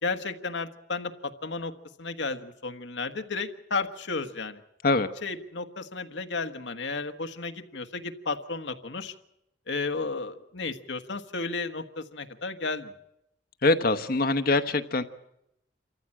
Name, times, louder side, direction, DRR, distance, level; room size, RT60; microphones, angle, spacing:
voice 1, 0.0-1.7 2.0-4.6 5.2-9.1 9.7-12.9, left 4 dB, 80° left, 7 dB, 1.4 m, -33 dB
voice 2, 13.6-15.0, left 2 dB, 55° left, 9 dB, 1.0 m, -23 dB
27.5 x 14.5 x 8.8 m, 0.82 s
head